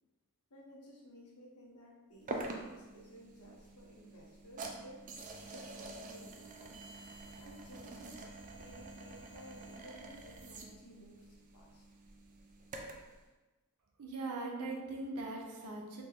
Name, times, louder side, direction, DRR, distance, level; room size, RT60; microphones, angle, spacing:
voice 1, 0.5-6.8 7.4-11.9, equal, 75° left, -2 dB, 0.7 m, -56 dB
sound 1, 2.3-13.1, right 2 dB, 35° right, 0.3 m, -47 dB
voice 2, 14.0-16.0, right 2 dB, 90° right, 0 dB, 0.6 m, -40 dB
3.0 x 2.0 x 3.4 m, 1.2 s
head